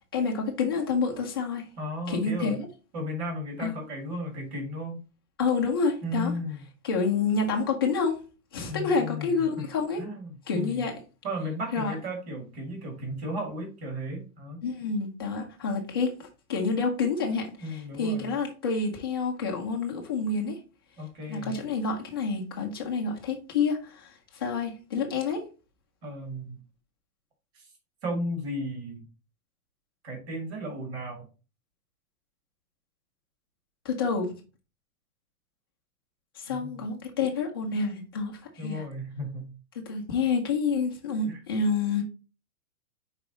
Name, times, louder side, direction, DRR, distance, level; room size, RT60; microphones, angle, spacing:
voice 1, 0.1-1.7 2.1-2.7 3.6-3.7 5.4-6.3 6.8-8.2 8.5-10.0 10.5-10.9 11.7-11.9 14.6-20.6 21.3-25.4 33.8-34.4 36.3-38.8 39.7-42.0, left 4 dB, 15° left, 0.6 m, -28 dB
voice 2, 1.8-2.6 2.9-5.0 6.0-6.6 8.7-9.5 10.0-10.8 11.2-14.6 17.6-18.3 21.0-21.6 26.0-26.6 27.5-27.7 28.0-29.1 30.0-31.3 36.5-36.7 38.6-39.5 41.3-41.4, equal, 45° right, 2.2 m, -34 dB
5.2 x 4.9 x 3.9 m
hypercardioid pair, 180°, 45 cm